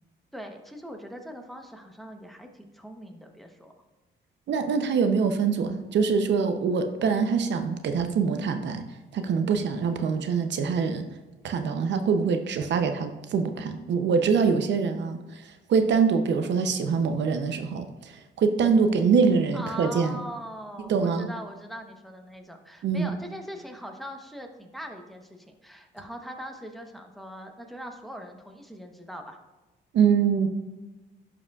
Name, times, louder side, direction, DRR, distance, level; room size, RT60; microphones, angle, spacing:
voice 1, 0.3-3.7 19.5-29.4, equal, ahead, 3 dB, 0.9 m, -41 dB
voice 2, 4.5-8.9 9.1-11.0 11.4-20.2 20.9-21.3 22.8-23.1 29.9-30.5, right 5 dB, 65° right, 7 dB, 0.7 m, -24 dB
11.0 x 4.9 x 2.4 m, 1.1 s
cardioid pair, 90°, 20 cm